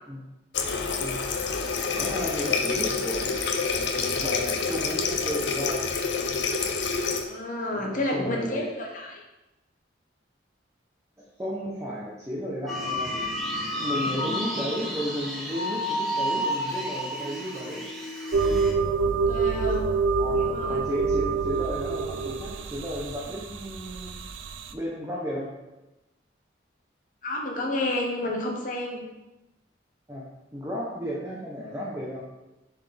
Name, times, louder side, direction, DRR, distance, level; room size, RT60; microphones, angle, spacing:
Water tap faucet, 0.5-7.2, left 5 dB, 70° left, 0.6 m, -27 dB
voice 1, 1.9-5.9 7.4-8.7 11.2-13.1 13.7-17.9 20.2-24.1 24.7-25.5 30.1-30.2 30.5-32.2, equal, 15° right, -5 dB, 0.7 m, -34 dB
voice 2, 7.1-9.2 19.3-19.9 20.4-20.9 27.2-29.0, left 1 dB, 45° left, 0 dB, 1.0 m, -30 dB
sound 1, 12.7-18.7, equal, ahead, 1.2 m, -31 dB
sound 2, 18.3-24.7, right 4 dB, 85° right, 0.4 m, -27 dB
7.0 x 4.2 x 3.4 m, 1.0 s
head